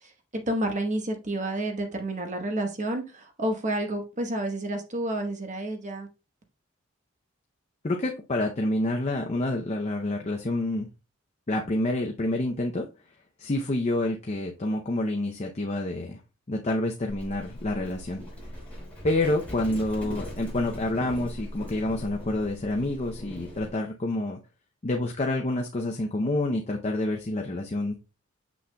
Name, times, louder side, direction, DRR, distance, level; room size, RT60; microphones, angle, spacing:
voice 1, 0.3-6.1, right 1 dB, 35° right, 4 dB, 1.1 m, -30 dB
voice 2, 7.8-10.9 11.5-12.9 13.4-16.2 16.5-18.2 19.0-24.4 24.8-27.9, left 1 dB, 35° left, 2 dB, 0.6 m, -28 dB
Livestock farm animals working animals, 17.1-23.8, equal, 5° left, 4.0 m, -40 dB
7.0 x 6.2 x 2.2 m, 0.30 s
head